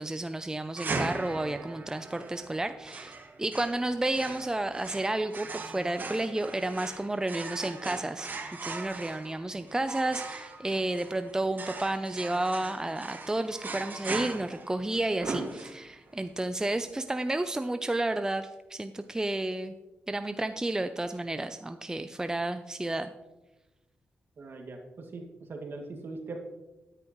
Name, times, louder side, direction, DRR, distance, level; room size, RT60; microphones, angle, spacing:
voice 1, 0.0-8.3 8.6-19.8 20.1-23.1, right 2 dB, 15° right, 9 dB, 0.5 m, -31 dB
sound 1, 0.8-16.1, right 3 dB, 45° right, 1.4 m, -39 dB
voice 2, 24.4-26.4, right 3 dB, 60° right, 2 dB, 2.2 m, -41 dB
12.5 x 10.0 x 3.1 m, 1.0 s
cardioid pair, 60°, 4 cm